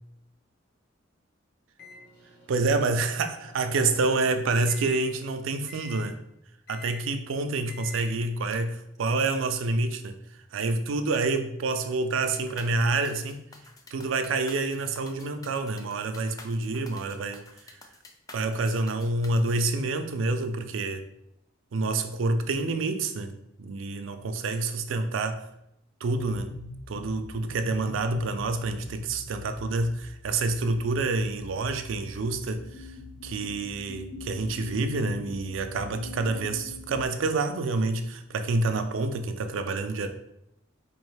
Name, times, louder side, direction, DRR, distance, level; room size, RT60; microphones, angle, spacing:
Microwave oven, 1.8-4.1 4.7-5.0 5.7-6.0 6.7-7.0 7.7-8.0, left 3 dB, 55° left, 1.0 m, -47 dB
voice 1, 2.5-6.1 6.7-10.2 10.5-13.4 13.9-17.4 18.3-21.0 21.7-25.4 26.0-26.6 26.9-32.8 33.2-40.1, right 3 dB, 75° right, 8 dB, 0.4 m, -28 dB
sound 1, 12.1-19.6, left 3 dB, 20° left, 0.4 m, -49 dB
sound 2, 26.1-37.1, left 2 dB, 90° left, 0.7 m, -43 dB
4.1 x 3.1 x 3.2 m, 0.80 s
head